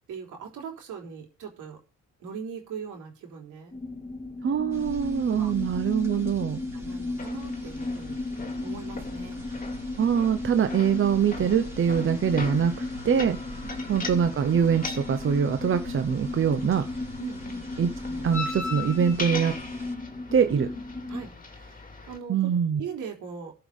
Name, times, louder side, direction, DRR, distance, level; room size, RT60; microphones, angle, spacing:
voice 1, 0.1-1.8 2.2-3.7 5.3-5.5 6.7-8.2 8.6-9.4 13.6-13.8 17.2-17.6 18.0-18.3 20.5-21.8 22.1-22.5 22.8-23.5, right 6 dB, 80° right, 1 dB, 3.9 m, -40 dB
sound 1, 3.7-21.3, left 2 dB, 10° left, 2.5 m, -35 dB
voice 2, 4.4-6.6 10.0-13.4 13.9-16.8 17.8-17.9 18.2-19.6 20.3-20.7 22.3-22.8, right 7 dB, 45° right, 8 dB, 1.0 m, -24 dB
sound 2, 4.7-19.9, equal, 10° right, 5.1 m, -45 dB
sound 3, 7.2-22.2, left 3 dB, 30° left, 2.5 m, -40 dB
13.5 x 5.9 x 5.5 m, 0.33 s
cardioid pair, 90°, 30 cm